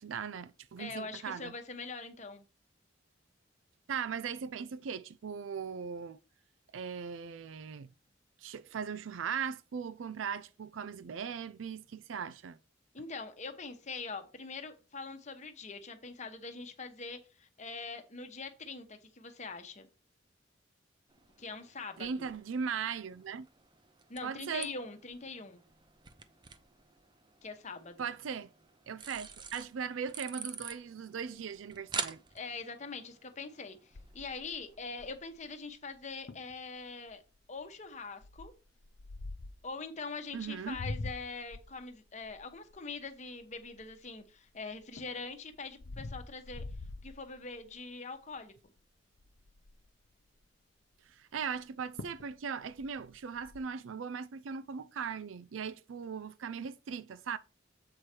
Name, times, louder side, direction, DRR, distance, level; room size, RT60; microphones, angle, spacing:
voice 1, 0.0-1.5 3.9-6.2 6.7-7.9 8.4-12.6 22.0-23.5 24.2-24.7 28.0-28.5 28.9-32.2 40.3-40.8 51.0-57.4, right 6 dB, 85° right, 0.4 m, -39 dB
voice 2, 0.8-2.5 12.9-19.9 21.4-22.3 24.1-25.6 27.4-28.1 32.3-37.2 37.5-38.5 39.6-46.6 47.0-48.5, left 4 dB, 40° left, 1.0 m, -43 dB
sound 1, 21.1-35.2, right 6 dB, 25° right, 0.5 m, -47 dB
sound 2, 33.9-35.4 36.0-36.1 36.3-36.5 37.1-37.4 38.2-39.7 40.4-44.3 44.7-47.8 48.2-48.5 48.8-48.9 49.1-49.9 51.6-51.7 52.0-52.3 52.6-53.6, left 2 dB, 70° left, 0.7 m, -44 dB
7.8 x 4.8 x 4.4 m
head